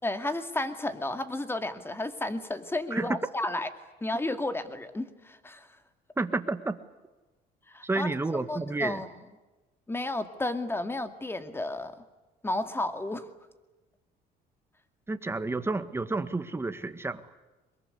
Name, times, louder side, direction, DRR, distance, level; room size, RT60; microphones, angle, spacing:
voice 1, 0.0-3.7 4.0-5.7 7.7-8.1 8.5-9.1 9.9-11.9 12.4-13.3, left 2 dB, 15° left, 9 dB, 2.3 m, -32 dB
voice 2, 6.2-6.8 7.8-9.0 15.1-17.2, right 3 dB, 15° right, 10 dB, 1.7 m, -30 dB
23.0 x 22.0 x 9.9 m, 1.1 s
cardioid pair, 110°, 17 cm